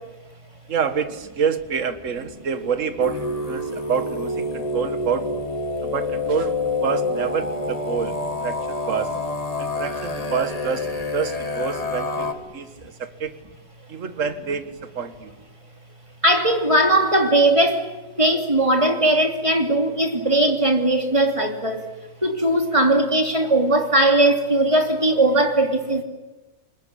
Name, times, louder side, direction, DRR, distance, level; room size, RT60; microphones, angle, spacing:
voice 1, 0.7-5.4 5.8-9.1 9.6-13.3 13.9-15.4, right 6 dB, 45° right, 1.8 m, -27 dB
sound 1, 3.0-12.3, left 2 dB, 20° left, 1.7 m, -27 dB
voice 2, 16.2-17.9 18.2-21.8 22.2-26.0, right 1 dB, 15° right, 2.9 m, -19 dB
28.5 x 20.5 x 9.9 m
omnidirectional pair, 1.9 m